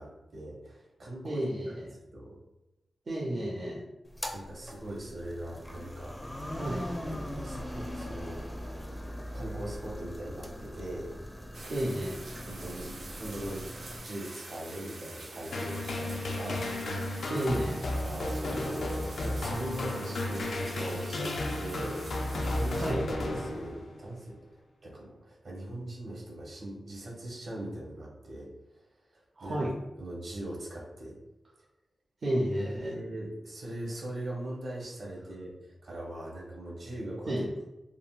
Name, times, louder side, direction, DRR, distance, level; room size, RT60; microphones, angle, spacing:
voice 1, 0.0-1.5 2.1-2.3 4.3-6.6 7.1-8.5 9.3-11.2 12.5-16.7 18.0-24.5 24.8-28.5 29.1-29.7 30.0-31.1 32.9-37.5, right 1 dB, 70° right, -3 dB, 1.0 m, -41 dB
voice 2, 1.2-1.9 3.1-3.8 6.5-6.8 11.7-12.2 17.3-17.8 22.8-23.0 29.4-29.7 32.2-33.0 37.3-37.5, right 1 dB, 50° right, -5 dB, 0.5 m, -31 dB
sound 1, 4.1-14.0, equal, 10° left, 0.4 m, -40 dB
sound 2, 11.5-22.9, right 2 dB, 85° right, 0.7 m, -46 dB
sound 3, 15.5-24.0, left 1 dB, 75° left, 0.4 m, -33 dB
3.6 x 2.1 x 2.4 m, 0.95 s
wide cardioid pair, 95°, 0 cm